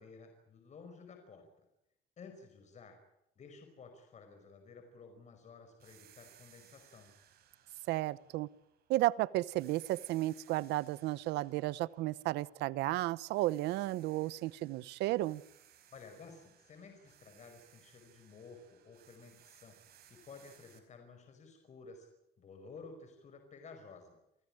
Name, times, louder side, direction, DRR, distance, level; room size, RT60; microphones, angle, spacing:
voice 1, 0.0-1.5 2.2-2.9 3.4-7.1 15.9-22.1 22.4-24.2, left 4 dB, 45° left, 5 dB, 5.3 m, -54 dB
sound 1, 5.8-9.1 9.5-12.9 13.3-20.8, right 10 dB, 70° right, 4.8 m, -64 dB
voice 2, 7.9-8.5 8.9-15.4, right 17 dB, 85° right, 20 dB, 0.8 m, -33 dB
28.5 x 16.5 x 8.8 m, 0.84 s
cardioid pair, 110°, 17 cm